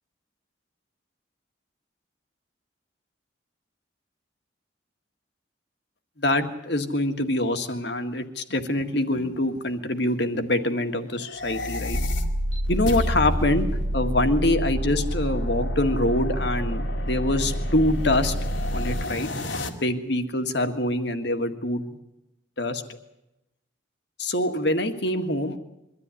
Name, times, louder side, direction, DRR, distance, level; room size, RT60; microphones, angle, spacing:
voice 1, 6.2-12.0 12.7-13.7 13.9-18.3 18.7-19.3 19.7-21.9 22.6-22.8 24.2-25.6, left 1 dB, 60° left, 7 dB, 1.9 m, -25 dB
sound 1, 11.2-19.7, left 2 dB, 80° left, 2.2 m, -34 dB
sound 2, 11.9-19.0, equal, 85° right, 1.6 m, -28 dB
23.5 x 13.5 x 9.8 m, 0.93 s
head